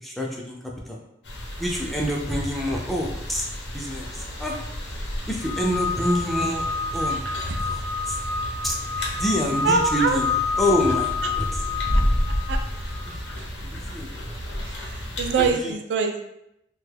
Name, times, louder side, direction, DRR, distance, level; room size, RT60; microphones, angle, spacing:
voice 1, 0.0-1.0 1.6-3.4 3.7-4.6 5.3-6.7 6.9-7.2 7.6-8.2 8.6-8.8 9.1-10.3 10.6-11.6 13.1-13.2 13.6-14.1 15.4-15.7, equal, ahead, -2 dB, 0.4 m, -27 dB
sound 1, 1.2-15.5, equal, 90° left, 0.7 m, -31 dB
sound 2, 5.4-13.2, left 5 dB, 45° left, 0.7 m, -29 dB
voice 2, 9.6-10.2 11.2-11.3 12.5-12.6 13.4-13.5 14.6-16.2, right 4 dB, 85° right, 5 dB, 0.4 m, -25 dB
2.9 x 2.2 x 3.2 m, 0.80 s
head